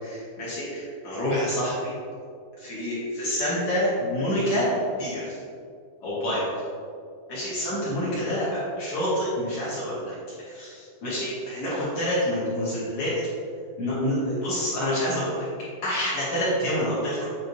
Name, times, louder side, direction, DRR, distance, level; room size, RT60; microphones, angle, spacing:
voice 1, 0.0-1.9 2.6-4.7 5.0-5.2 6.0-6.5 7.3-10.1 10.4-13.1 13.8-15.4 15.8-17.3, equal, 75° left, -9 dB, 1.3 m, -27 dB
8.6 x 5.6 x 2.8 m, 2.3 s
omnidirectional pair, 5.3 m